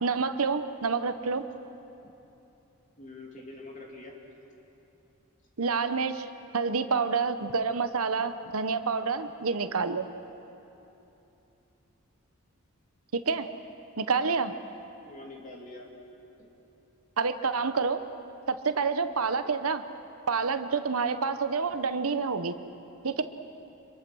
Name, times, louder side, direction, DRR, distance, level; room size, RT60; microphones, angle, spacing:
voice 1, 0.0-1.4 5.6-6.3 6.5-10.1 13.1-13.5 14.0-14.5 17.2-18.0 18.5-19.8 20.3-22.6 23.0-23.2, right 5 dB, 85° right, 10 dB, 0.9 m, -28 dB
voice 2, 3.0-4.2 15.0-15.9 16.4-16.5, left 2 dB, 35° left, 0 dB, 2.9 m, -45 dB
25.5 x 23.0 x 6.3 m, 2.9 s
head